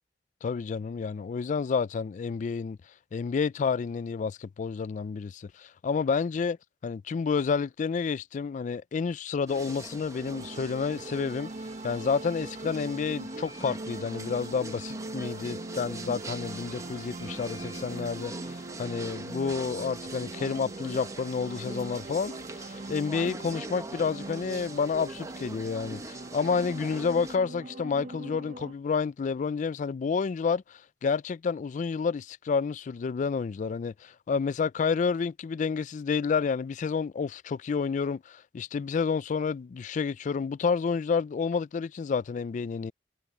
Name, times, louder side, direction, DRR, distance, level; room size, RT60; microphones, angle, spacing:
voice 1, 0.4-2.8 3.1-6.6 6.8-11.5 11.8-42.9, left 5 dB, 45° left, 0.3 m, -30 dB
sound 1, 9.5-27.4, right 2 dB, 20° right, 1.2 m, -43 dB
sound 2, 10.2-28.7, right 2 dB, 45° right, 0.8 m, -41 dB
head